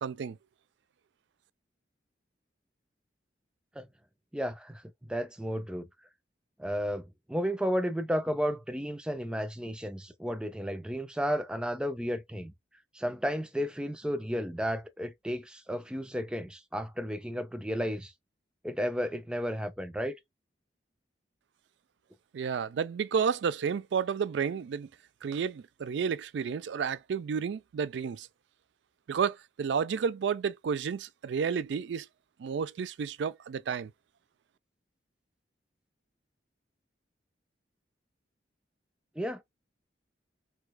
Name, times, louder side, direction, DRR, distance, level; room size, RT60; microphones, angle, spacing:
voice 1, 0.0-0.4 22.3-24.9 25.2-28.3 29.1-32.1 32.4-33.9, right 6 dB, 70° right, 0.3 m, -31 dB
voice 2, 4.3-4.8 5.1-5.9 6.6-12.5 12.9-18.1 18.6-20.2 39.2-39.4, equal, 5° right, 0.4 m, -33 dB
4.5 x 2.3 x 2.2 m
head